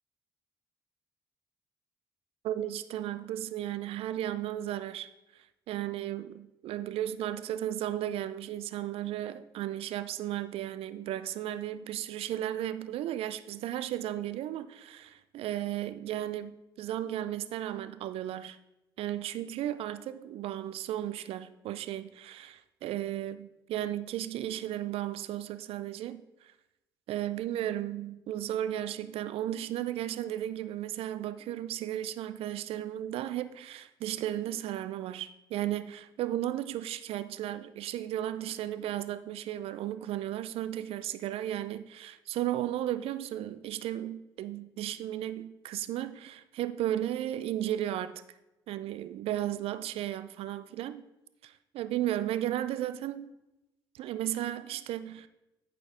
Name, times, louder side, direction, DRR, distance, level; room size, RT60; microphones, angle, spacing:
voice 1, 2.4-5.1 5.7-18.6 19.0-26.2 27.1-48.1 48.7-51.0 51.4-53.3 53.9-55.3, right 12 dB, 70° right, 14 dB, 0.5 m, -34 dB
8.8 x 5.1 x 4.9 m, 0.95 s
hypercardioid pair, 45°, 10 cm